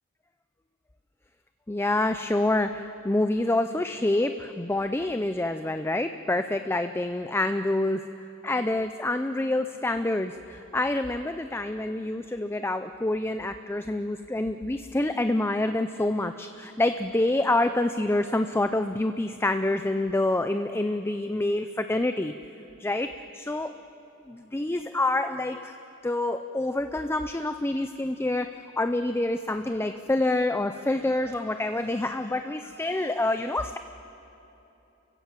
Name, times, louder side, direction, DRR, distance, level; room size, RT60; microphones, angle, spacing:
voice 1, 1.7-8.0 8.4-22.3 22.8-23.7 24.3-25.7 26.0-33.8, left 2 dB, 10° left, 9 dB, 0.5 m, -27 dB
29.5 x 16.0 x 7.6 m, 3.0 s
head